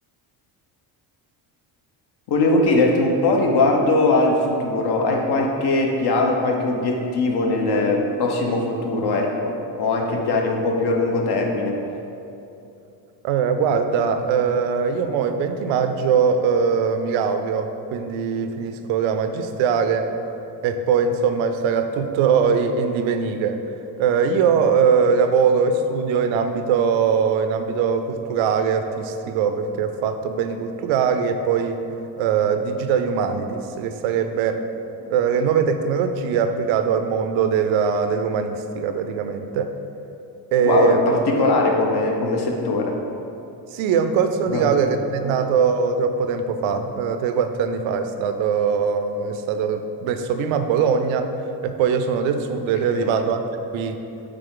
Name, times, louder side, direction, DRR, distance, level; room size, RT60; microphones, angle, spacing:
voice 1, 2.3-11.7 35.0-35.1 40.6-43.0 44.5-44.8 45.2-45.4 52.9-53.1, left 2 dB, 55° left, 1 dB, 0.9 m, -21 dB
voice 2, 13.2-20.1 20.6-23.6 24.0-31.9 32.2-34.6 35.1-39.7 40.5-41.1 43.7-51.3 51.6-53.4 53.7-54.0, right 6 dB, 85° right, 8 dB, 0.5 m, -21 dB
6.8 x 3.7 x 3.8 m, 2.8 s
cardioid pair, 115°, 46 cm